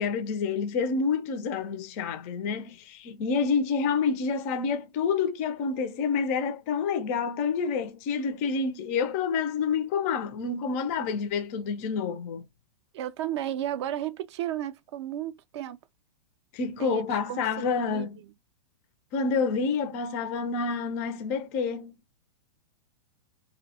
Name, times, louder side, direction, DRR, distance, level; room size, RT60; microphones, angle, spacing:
voice 1, 0.0-12.5 16.5-18.1 19.1-21.9, left 5 dB, 25° left, 0.4 m, -28 dB
voice 2, 12.9-15.8 16.8-18.1, right 12 dB, 45° right, 0.4 m, -33 dB
2.6 x 2.0 x 2.7 m
supercardioid pair, 170°, 21 cm